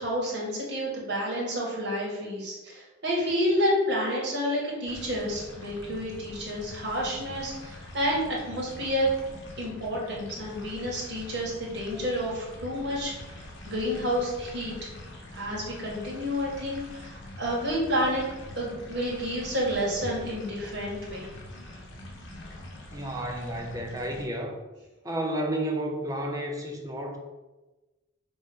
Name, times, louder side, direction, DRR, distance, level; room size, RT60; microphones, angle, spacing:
voice 1, 0.0-9.1 9.6-14.9 15.3-18.2 18.6-21.3, equal, 60° right, -4 dB, 2.4 m, -30 dB
sound 1, 4.9-24.2, left 1 dB, 65° left, 1.6 m, -44 dB
voice 2, 22.9-24.6 25.0-27.2, right 1 dB, 20° right, 1 dB, 1.0 m, -31 dB
6.4 x 3.5 x 5.5 m, 1.1 s
head